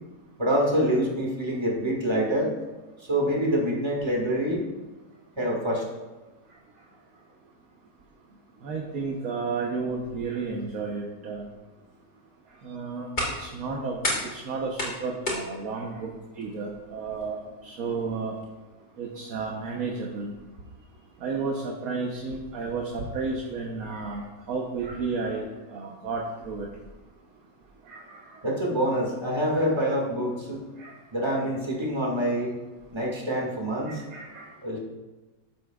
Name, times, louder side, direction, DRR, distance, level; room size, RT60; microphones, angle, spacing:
voice 1, 0.4-2.5 3.0-4.6 5.4-5.8 28.4-30.6 31.1-32.5 32.9-34.0 34.6-34.8, equal, 15° right, -2 dB, 1.8 m, -26 dB
voice 2, 8.6-11.4 12.6-13.1 13.4-14.0 14.3-16.1 16.4-18.4 19.0-20.3 21.2-25.4 25.7-26.7 27.9-28.4 30.8-30.9 33.9-34.5, right 4 dB, 60° right, -1 dB, 1.3 m, -32 dB
sound 1, 12.5-18.5, left 1 dB, 35° left, 3.6 m, -35 dB
14.0 x 8.2 x 2.4 m, 1.2 s
omnidirectional pair, 1.9 m